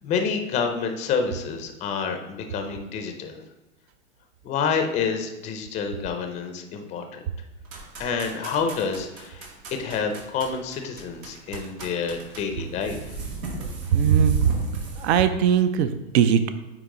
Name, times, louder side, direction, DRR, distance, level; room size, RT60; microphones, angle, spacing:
voice 1, 0.0-3.4 4.4-7.2 8.0-9.5 9.8-13.2, left 5 dB, 20° left, 5 dB, 0.5 m, -28 dB
sound 1, 7.7-15.2, right 3 dB, 85° right, 2.1 m, -37 dB
voice 2, 13.9-14.4 15.0-16.5, right 8 dB, 55° right, 10 dB, 0.6 m, -20 dB
8.9 x 3.0 x 3.8 m, 1.0 s
hypercardioid pair, 130°, 40 cm